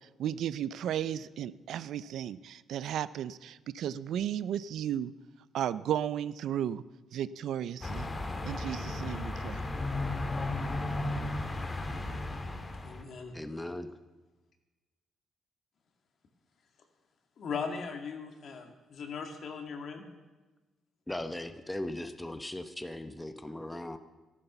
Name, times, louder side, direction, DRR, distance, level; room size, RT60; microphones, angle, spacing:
voice 1, 0.2-5.1 5.5-6.8 7.1-8.1 8.4-9.7, right 10 dB, 75° right, 17 dB, 0.4 m, -34 dB
sound 1, 7.8-13.0, left 2 dB, 25° left, 1.7 m, -34 dB
voice 2, 12.8-13.4 17.4-20.1, left 5 dB, 60° left, 5 dB, 2.2 m, -39 dB
voice 3, 13.3-13.9 21.1-24.0, left 1 dB, 10° left, 9 dB, 0.9 m, -38 dB
13.0 x 11.5 x 6.8 m, 1.2 s
cardioid pair, 90°, 0 cm